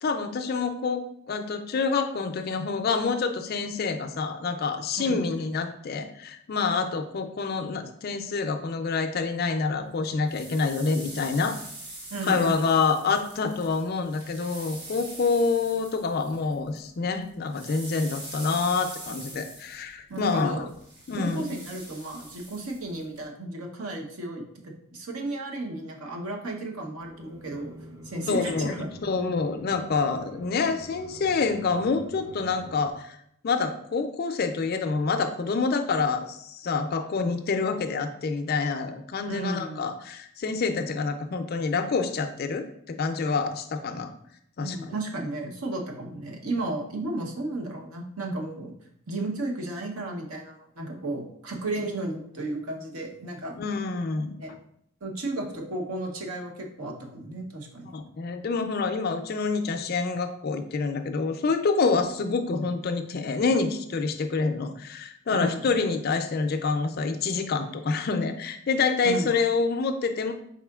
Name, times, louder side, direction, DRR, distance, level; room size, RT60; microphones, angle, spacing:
voice 1, 0.0-1.0 1.3-11.6 12.3-20.7 21.1-21.5 28.3-28.8 29.0-33.2 33.4-44.1 44.6-45.0 53.5-54.4 57.9-70.3, left 4 dB, 45° left, 7 dB, 0.4 m, -27 dB
sound 1, 10.0-16.9 17.1-23.2, right 1 dB, 50° right, 1.4 m, -43 dB
voice 2, 12.1-12.6 20.1-20.7 21.2-27.7 28.0-28.9 39.3-39.8 44.6-48.7 49.1-53.5 54.4-54.5 55.0-57.9 65.3-65.7 69.0-69.3, right 2 dB, 80° right, 2 dB, 0.8 m, -33 dB
sound 2, 27.0-32.9, right 1 dB, 15° right, 0.4 m, -46 dB
4.9 x 3.7 x 2.3 m, 0.71 s
head